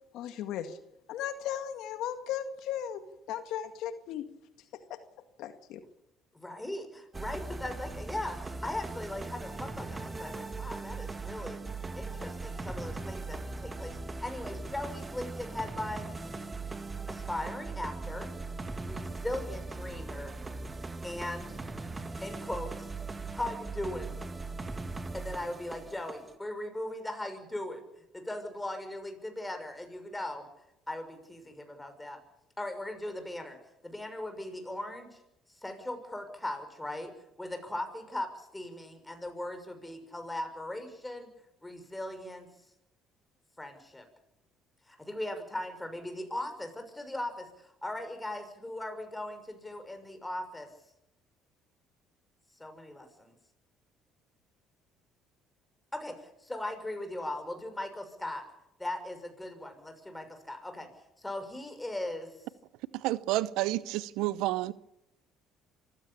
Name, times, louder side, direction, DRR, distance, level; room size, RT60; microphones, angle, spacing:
voice 1, 0.1-0.8 1.1-3.0 3.3-4.2 4.9-5.0 5.4-5.8, left 10 dB, 75° left, 1.9 m, -36 dB
voice 2, 6.3-11.6 11.9-16.2 17.1-18.3 18.8-20.4 21.0-21.6 22.2-22.9 23.3-24.1 25.1-27.9 28.1-30.5 30.9-32.2 32.6-33.6 33.8-35.2 35.6-41.3 41.6-42.5 43.6-44.1 44.9-50.7 52.6-53.3 55.9-58.4 58.8-60.9 61.2-62.3, left 1 dB, 10° left, 6.2 m, -39 dB
sound 1, 7.1-26.3, right 3 dB, 25° right, 2.1 m, -39 dB
voice 3, 62.9-64.7, right 17 dB, 80° right, 0.8 m, -30 dB
25.0 x 15.5 x 8.7 m
supercardioid pair, 75°, 0 cm